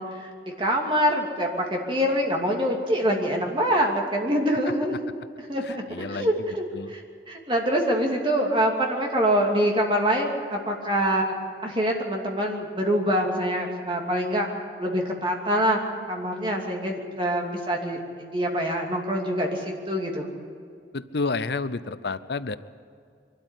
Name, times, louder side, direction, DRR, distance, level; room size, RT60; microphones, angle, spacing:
voice 1, 0.0-4.9 5.5-5.8 6.1-11.4 11.6-14.5 14.8-15.8 16.1-20.3, equal, 30° right, 0 dB, 2.7 m, -25 dB
voice 2, 5.6-6.3 6.7-6.9 20.9-22.6, left 3 dB, 70° left, 14 dB, 0.6 m, -30 dB
23.0 x 13.0 x 9.9 m, 2.2 s
head